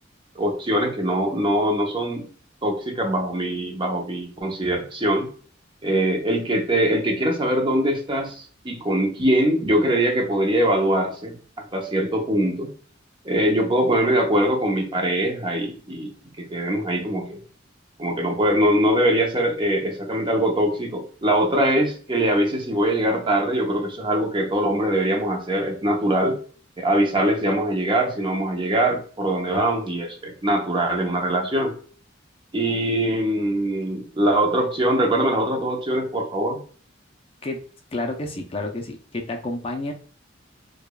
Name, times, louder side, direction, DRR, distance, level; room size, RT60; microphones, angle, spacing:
voice 1, 0.3-2.3 2.6-5.3 5.8-12.7 13.2-16.1 16.5-17.4 18.0-26.4 26.8-31.7 32.5-36.6, right 1 dB, 25° right, 2 dB, 0.8 m, -22 dB
voice 2, 37.9-39.9, left 2 dB, 30° left, 3 dB, 0.6 m, -30 dB
4.9 x 2.5 x 2.2 m, 0.43 s
head